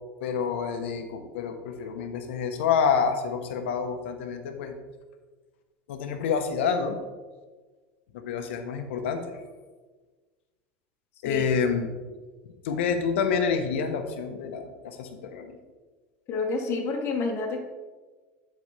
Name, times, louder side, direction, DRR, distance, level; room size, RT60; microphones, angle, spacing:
voice 1, 0.2-4.7 5.9-7.0 8.1-9.2 11.2-11.9 12.6-15.6, left 6 dB, 90° left, 6 dB, 0.8 m, -28 dB
voice 2, 16.3-17.6, left 4 dB, 45° left, 1 dB, 1.0 m, -28 dB
9.6 x 4.2 x 3.2 m, 1.3 s
supercardioid pair, 115°, 6 cm